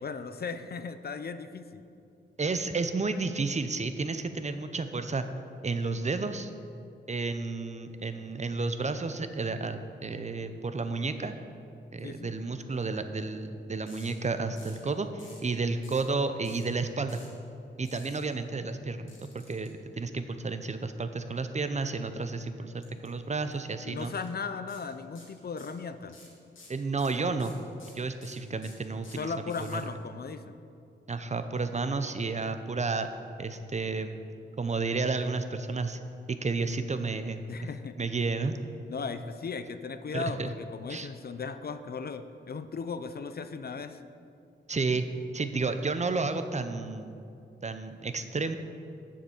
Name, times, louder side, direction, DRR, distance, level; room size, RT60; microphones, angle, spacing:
voice 1, 0.0-1.8 12.0-12.4 23.8-26.2 29.1-30.6 37.5-38.0 38.9-44.0, left 5 dB, 50° left, 11 dB, 0.5 m, -37 dB
voice 2, 2.4-5.2 5.6-6.5 7.1-11.4 11.9-17.2 17.8-19.1 19.5-24.1 26.7-27.5 28.0-29.8 31.1-33.1 33.4-34.2 34.6-36.0 36.3-37.4 38.0-38.6 40.1-40.5 40.9-41.1 44.7-45.1 45.3-47.2 47.6-48.6, right 3 dB, 35° right, 9 dB, 0.6 m, -31 dB
sound 1, 13.9-14.1 14.6-14.9 15.2-15.5 15.8-16.1 16.4-16.7 17.1-17.3 17.8-18.2 19.1-19.7 22.8-23.1 23.4-23.5 24.0-24.3 24.7-24.8 25.1-25.8 26.1-29.8, left 3 dB, 85° left, 2.1 m, -53 dB
7.5 x 6.7 x 7.1 m, 2.5 s
wide cardioid pair, 75°, 20 cm